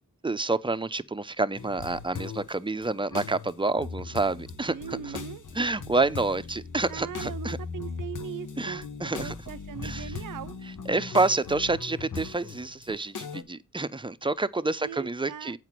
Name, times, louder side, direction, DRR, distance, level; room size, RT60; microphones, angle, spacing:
voice 1, 0.2-5.2 5.5-7.6 8.6-9.3 9.8-10.1 10.9-15.6, right 3 dB, 15° right, 0.6 m, -28 dB
sound 1, 1.6-2.5 2.8-13.4, left 5 dB, 70° left, 1.0 m, -39 dB
voice 2, 4.7-5.4 6.9-10.5 14.8-15.6, right 9 dB, 75° right, 0.5 m, -40 dB
8.0 x 4.9 x 5.9 m
cardioid pair, 50°, 32 cm